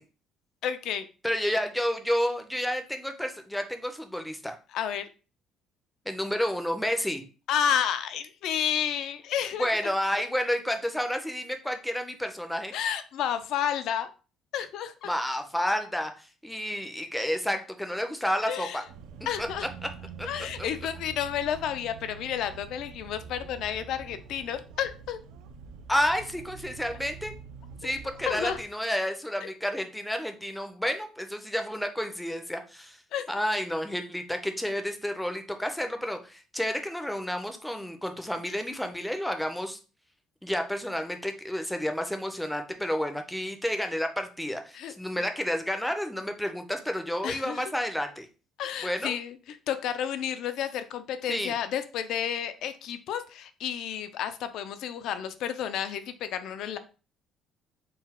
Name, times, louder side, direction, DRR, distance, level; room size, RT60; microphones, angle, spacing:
voice 1, 0.6-1.1 1.4-1.5 4.7-5.0 7.5-9.7 12.7-14.1 14.5-15.1 18.4-18.8 19.3-19.7 20.2-25.2 27.8-27.9 28.3-28.6 33.1-33.2 44.7-44.9 47.2-47.6 48.6-56.8, left 9 dB, 60° left, 10 dB, 0.4 m, -31 dB
voice 2, 1.2-4.6 6.1-7.2 9.6-12.7 15.1-18.8 19.4-19.5 20.2-20.3 25.9-27.3 27.8-33.0 33.3-39.8 40.4-48.3 48.8-49.2 51.3-51.5, equal, 5° left, 6 dB, 0.5 m, -30 dB
sound 1, 18.9-28.6, right 6 dB, 80° right, 0.5 m, -45 dB
3.8 x 2.2 x 4.2 m, 0.34 s
cardioid pair, 155°, 0 cm